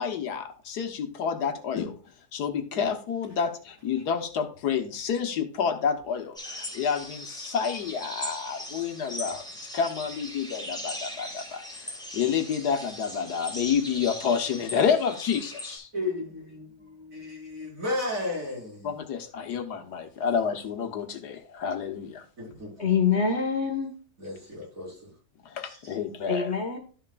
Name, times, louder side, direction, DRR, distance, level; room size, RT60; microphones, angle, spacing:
voice 1, 0.0-2.0 2.3-9.4 9.7-11.6 12.1-15.9 18.8-22.2 25.4-26.5, left 7 dB, 80° left, 1.7 m, -29 dB
sound 1, 6.4-15.8, equal, ahead, 2.7 m, -39 dB
voice 2, 15.9-16.2 17.1-18.9 22.4-22.7 24.2-25.1 25.6-25.8, left 2 dB, 55° right, 5.3 m, -33 dB
voice 3, 22.5-23.9 26.2-26.8, left 6 dB, 45° left, 1.7 m, -26 dB
12.5 x 6.6 x 2.4 m
omnidirectional pair, 1.7 m